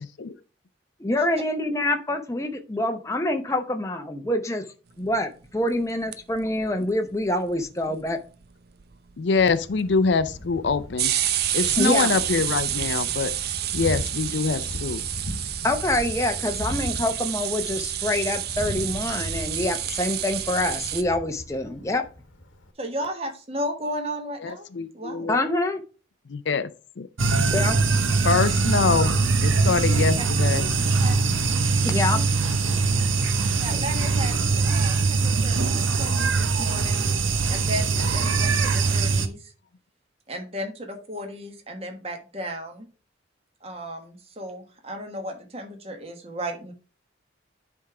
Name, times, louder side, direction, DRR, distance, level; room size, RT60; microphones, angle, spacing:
voice 1, 1.0-4.7 5.0-8.2 11.8-12.1 15.6-22.0 25.3-25.8 27.5-27.8 31.8-32.4, left 1 dB, 15° left, 0.6 m, -26 dB
sound 1, 5.8-6.7 6.9-7.0 7.2-7.3 7.5-8.1 8.4-8.5 8.8-9.1 10.0-10.1 10.9-21.0, right 12 dB, 50° right, 0.5 m, -29 dB
voice 2, 9.2-11.1 11.5-13.3 13.7-15.0 24.4-25.5 26.3-26.7 27.0-27.1 28.2-29.2 29.4-30.7, left 4 dB, 65° left, 0.5 m, -24 dB
Thunder, 9.4-22.7, equal, 80° left, 1.2 m, -37 dB
voice 3, 22.8-24.7 24.9-25.3 31.0-31.2 32.1-32.2 33.6-37.0 37.5-39.5 40.3-42.9 43.6-46.7, equal, 30° right, 1.3 m, -34 dB
sound 2, 27.2-39.3, right 4 dB, 80° right, 0.8 m, -22 dB
10.0 x 3.6 x 4.7 m
head